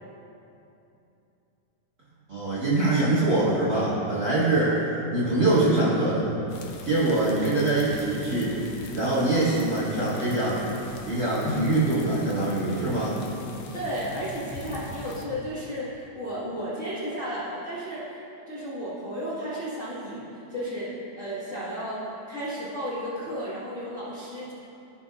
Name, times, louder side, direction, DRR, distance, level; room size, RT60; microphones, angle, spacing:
voice 1, 2.3-6.3 6.8-8.6 8.9-10.6 11.0-13.2, right 2 dB, 35° right, -10 dB, 1.7 m, -24 dB
sound 1, 6.5-15.3, left 3 dB, 75° left, 1.7 m, -39 dB
voice 2, 13.7-18.2 18.5-24.5, equal, 35° left, -12 dB, 1.3 m, -33 dB
15.0 x 5.6 x 2.4 m, 2.9 s
omnidirectional pair, 3.4 m